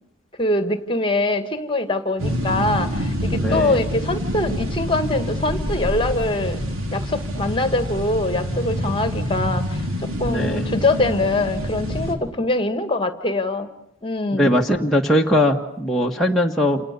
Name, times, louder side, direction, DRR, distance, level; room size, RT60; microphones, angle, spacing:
voice 1, 0.4-6.6 6.9-9.9 10.2-13.7 14.0-14.6, left 2 dB, 25° left, 10 dB, 2.0 m, -23 dB
sound 1, 2.2-12.1, equal, 85° right, 4.3 m, -26 dB
voice 2, 3.4-3.7 10.3-10.6 14.3-16.8, left 1 dB, ahead, -2 dB, 1.6 m, -20 dB
29.0 x 28.5 x 6.9 m, 0.76 s
head